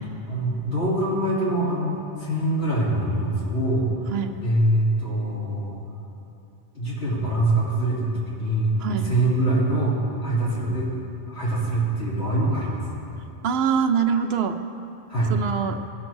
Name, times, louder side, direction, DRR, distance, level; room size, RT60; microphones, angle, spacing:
voice 1, 0.0-4.0 4.4-5.8 6.7-10.9 11.3-12.9 15.1-15.3, right 1 dB, 70° left, -8 dB, 3.4 m, -24 dB
voice 2, 13.4-14.6 15.3-15.8, right 6 dB, 70° right, 8 dB, 0.8 m, -23 dB
16.5 x 6.4 x 4.6 m, 2.7 s
omnidirectional pair, 1.1 m